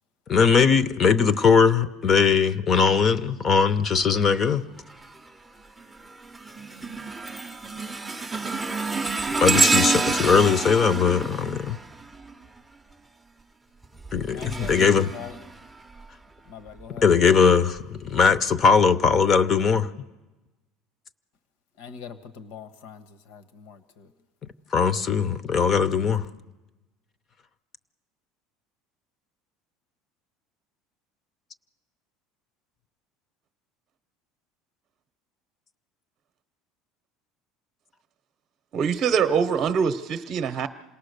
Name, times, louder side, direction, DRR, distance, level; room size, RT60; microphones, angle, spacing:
voice 1, 0.3-4.7 9.4-11.8 14.1-15.1 17.0-19.9 24.7-26.3, left 6 dB, 30° left, 15 dB, 0.7 m, -20 dB
sound 1, 4.9-5.3 5.8-12.6 13.8-16.0 16.7-16.9 17.8-17.9, right 3 dB, 5° right, 0.6 m, -28 dB
voice 2, 14.3-15.4 16.4-17.1 21.8-24.1, left 6 dB, 75° left, 10 dB, 1.4 m, -42 dB
voice 3, 38.7-40.7, right 6 dB, 35° right, 6 dB, 0.8 m, -24 dB
27.0 x 18.5 x 6.7 m, 1.1 s
cardioid pair, 150°, 0 cm